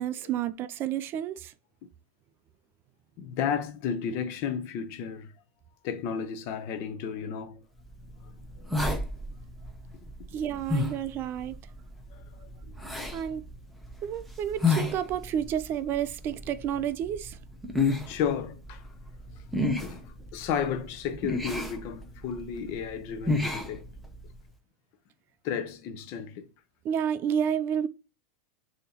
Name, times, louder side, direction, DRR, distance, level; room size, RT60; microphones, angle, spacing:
voice 1, 0.0-1.5 10.3-11.5 13.1-13.4 14.0-17.4 26.8-27.9, right 9 dB, 35° right, 0.4 m, -30 dB
voice 2, 3.2-5.3 5.8-7.6 12.1-12.5 18.1-18.8 19.8-23.8 25.4-26.5, left 7 dB, 50° left, 0.7 m, -33 dB
sound 1, 7.8-24.4, left 3 dB, ahead, 0.8 m, -33 dB
6.7 x 2.8 x 2.8 m
supercardioid pair, 135°, 6 cm